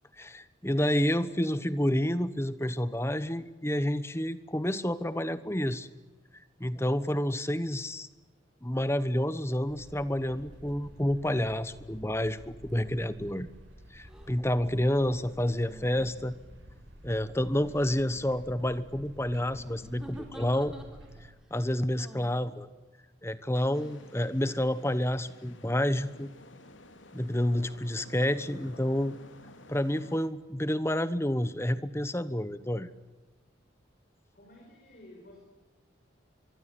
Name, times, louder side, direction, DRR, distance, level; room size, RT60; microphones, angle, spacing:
voice 1, 0.2-5.9 6.6-8.1 8.6-13.5 13.9-16.3 17.0-20.7 21.5-22.7 23.2-26.3 27.1-29.2 29.7-32.9, left 1 dB, 15° left, 14 dB, 1.1 m, -29 dB
sound 1, 9.6-21.3, equal, 80° right, 7.5 m, -51 dB
sound 2, 14.0-14.3 15.6-16.5 17.6-18.2 19.5-21.3 22.0-22.4 23.6-24.1, equal, 5° right, 3.9 m, -49 dB
voice 2, 15.1-15.7 28.3-28.9 34.3-35.4, left 1 dB, 45° left, 0 dB, 5.8 m, -54 dB
sound 3, 23.7-30.3, left 2 dB, 80° left, 2.8 m, -53 dB
24.5 x 23.0 x 9.3 m, 1.2 s
head